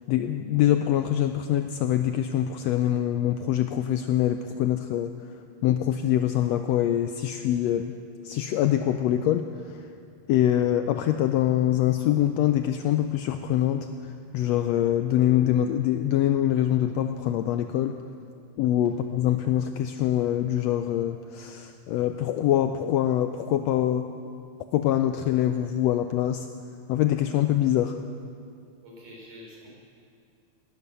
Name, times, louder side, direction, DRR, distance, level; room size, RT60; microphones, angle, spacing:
voice 1, 0.1-5.3 5.6-7.9 8.2-9.8 10.3-18.0 18.6-24.1 24.7-26.5 26.9-28.0, left 11 dB, 90° left, 8 dB, 1.5 m, -24 dB
voice 2, 28.8-29.7, left 1 dB, 70° right, -3 dB, 5.1 m, -46 dB
18.0 x 12.0 x 6.8 m, 2.3 s
omnidirectional pair, 3.6 m